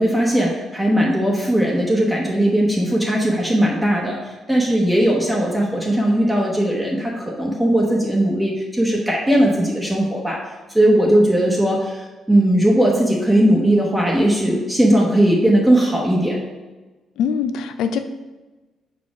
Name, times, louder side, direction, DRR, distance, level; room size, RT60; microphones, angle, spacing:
voice 1, 0.0-10.4 10.7-16.4, right 1 dB, 10° right, -3 dB, 1.0 m, -18 dB
voice 2, 17.2-18.0, left 7 dB, 85° left, 9 dB, 0.4 m, -22 dB
4.6 x 4.3 x 4.8 m, 1.2 s
cardioid pair, 90°, 0 cm